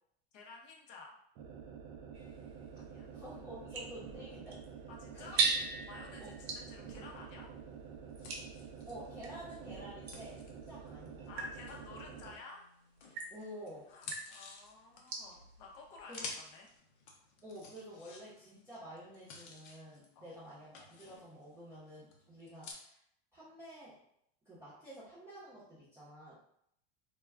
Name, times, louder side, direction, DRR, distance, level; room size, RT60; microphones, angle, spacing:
voice 1, 0.3-1.2 2.8-3.1 4.9-5.4 5.9-7.5 11.3-12.7 13.9-16.7 20.2-20.3, left 3 dB, 45° left, -1 dB, 0.6 m, -52 dB
sound 1, 1.3-12.4, right 6 dB, 45° right, 0.4 m, -49 dB
sound 2, 2.1-9.4 10.0-16.5, right 4 dB, 70° right, 0.8 m, -41 dB
voice 2, 3.1-4.6 5.1-5.4 6.2-6.3 8.9-11.3 13.3-13.9 16.1-16.2 17.4-23.0 23.3-24.0 24.4-26.4, equal, 10° right, -12 dB, 0.7 m, -50 dB
sound 3, 8.2-12.5 13.0-22.7, left 4 dB, 80° left, 0.7 m, -52 dB
2.2 x 2.2 x 3.4 m, 0.71 s
supercardioid pair, 160°, 32 cm